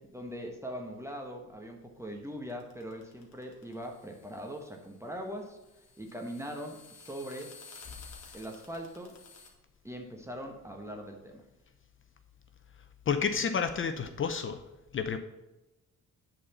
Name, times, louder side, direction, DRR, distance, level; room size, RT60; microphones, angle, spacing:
voice 1, 0.0-5.6 6.0-7.5 8.3-9.2 9.8-11.4, equal, 10° right, 2 dB, 1.2 m, -41 dB
sound 1, 2.5-9.5, left 4 dB, 60° left, 2.1 m, -53 dB
voice 2, 13.1-14.6 14.9-15.2, left 6 dB, 40° left, 9 dB, 0.7 m, -30 dB
8.4 x 4.2 x 7.0 m, 0.99 s
cardioid pair, 90°, 30 cm